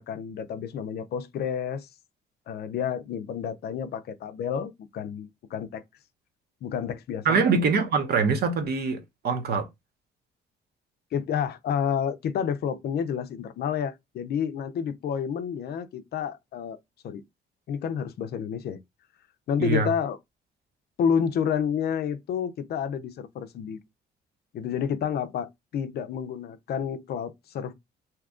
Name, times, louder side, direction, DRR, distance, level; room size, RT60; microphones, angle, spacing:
voice 1, 0.0-1.9 2.5-5.8 6.6-7.4 11.1-16.8 17.0-17.2 17.7-18.8 19.5-20.2 21.0-23.8 24.5-27.7, left 7 dB, 60° left, 0.5 m, -30 dB
voice 2, 7.2-9.0 9.2-9.7 19.6-19.9, right 4 dB, 60° right, 0.9 m, -23 dB
2.8 x 2.3 x 3.6 m
cardioid pair, 100°, 19 cm